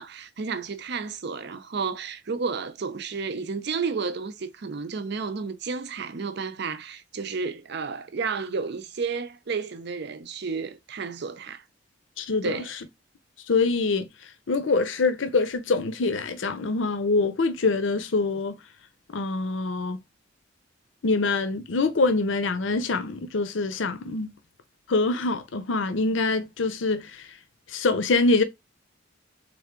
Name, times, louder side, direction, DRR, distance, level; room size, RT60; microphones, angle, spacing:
voice 1, 0.0-11.6 12.4-12.7, right 5 dB, 60° right, 0.6 m, -32 dB
voice 2, 12.2-12.6 13.5-14.1 14.5-18.6 19.1-20.0 21.0-24.3 24.9-27.2 27.7-28.4, left 3 dB, 75° left, 0.6 m, -24 dB
3.6 x 3.4 x 3.6 m
head